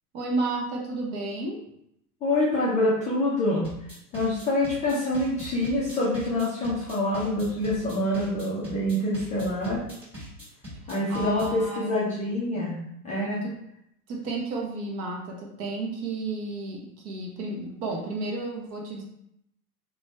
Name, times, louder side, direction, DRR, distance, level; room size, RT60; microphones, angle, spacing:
voice 1, 0.1-1.6 11.1-11.9 13.4-13.6 14.1-19.0, right 2 dB, 35° right, 0 dB, 0.6 m, -32 dB
voice 2, 2.2-3.7 4.1-9.8 10.9-13.4, left 1 dB, 15° left, -7 dB, 0.4 m, -26 dB
sound 1, 3.6-11.6, equal, 5° right, 1.3 m, -41 dB
2.6 x 2.2 x 3.1 m, 0.76 s
hypercardioid pair, 110°, 46 cm